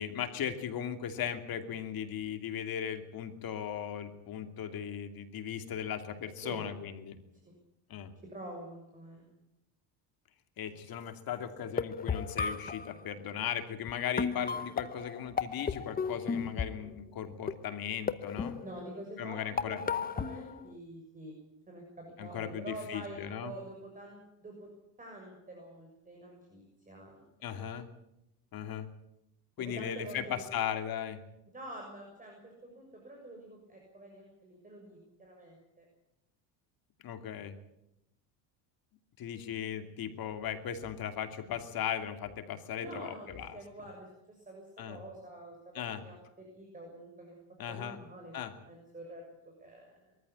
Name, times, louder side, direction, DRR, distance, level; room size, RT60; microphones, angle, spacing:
voice 1, 0.0-7.2 7.9-8.1 10.6-18.6 19.2-19.8 22.2-23.5 27.4-27.9 28.5-28.9 29.6-31.2 37.0-37.6 39.2-43.6 44.8-45.0 45.7-46.0 47.6-48.0 48.3-48.5, left 9 dB, 45° left, 7 dB, 2.7 m, -37 dB
voice 2, 8.3-9.3 18.6-21.4 21.7-24.7 25.0-27.2 29.6-30.2 31.5-35.8 42.8-43.3 43.5-45.5 45.9-47.4 47.7-48.3 48.6-49.2 49.6-49.9, right 1 dB, 15° right, 1 dB, 6.7 m, -47 dB
sound 1, 11.6-12.9 13.9-14.0 14.2-16.9 17.5-17.8 18.1-19.1 19.6-20.7, left 6 dB, 20° left, 0.9 m, -34 dB
22.5 x 14.5 x 9.9 m, 0.86 s
cardioid pair, 120°, 49 cm